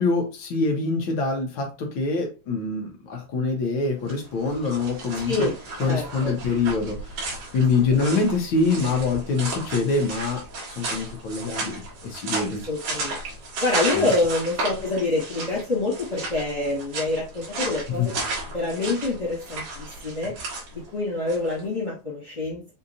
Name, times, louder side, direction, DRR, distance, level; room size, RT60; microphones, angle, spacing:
voice 1, 0.0-5.5 5.8-10.4 10.8-12.6 13.9-14.1 17.9-18.1, left 4 dB, 85° left, 1 dB, 1.1 m, -25 dB
sound 1, 4.0-21.6, right 2 dB, 70° right, 3.2 m, -34 dB
voice 2, 5.8-6.3 7.9-8.2 12.7-13.2 13.6-18.1 18.5-20.3 20.7-22.7, left 2 dB, 35° left, -5 dB, 1.1 m, -26 dB
6.4 x 2.8 x 2.6 m, 0.29 s
omnidirectional pair, 3.4 m